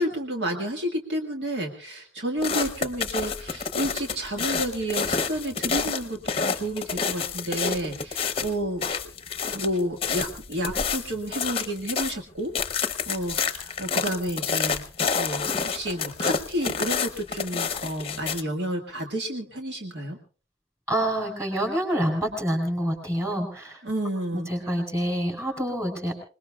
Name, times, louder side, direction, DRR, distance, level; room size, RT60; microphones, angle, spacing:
voice 1, 0.0-9.1 9.5-14.8 15.1-20.2 23.8-24.5, right 1 dB, 70° right, 2 dB, 1.8 m, -31 dB
sound 1, 2.4-12.2 12.5-18.4, left 5 dB, 30° left, 0.8 m, -29 dB
voice 2, 20.9-23.8 24.3-26.1, equal, 15° right, 4 dB, 4.4 m, -27 dB
26.5 x 20.0 x 2.4 m, 0.38 s
head